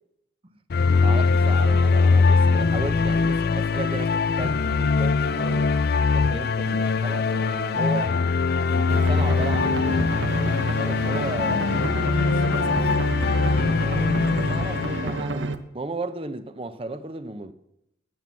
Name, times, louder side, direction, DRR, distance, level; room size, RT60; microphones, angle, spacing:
sound 1, 0.7-15.2, left 4 dB, 50° left, 0.4 m, -22 dB
voice 1, 1.0-5.7 6.1-8.2 8.6-10.0 10.3-11.8 13.8-17.5, right 2 dB, 30° right, 0.7 m, -35 dB
sound 2, 8.9-15.6, right 2 dB, 75° right, 0.9 m, -30 dB
voice 2, 11.3-13.2, left 4 dB, 90° left, 0.9 m, -39 dB
16.0 x 6.0 x 7.5 m
head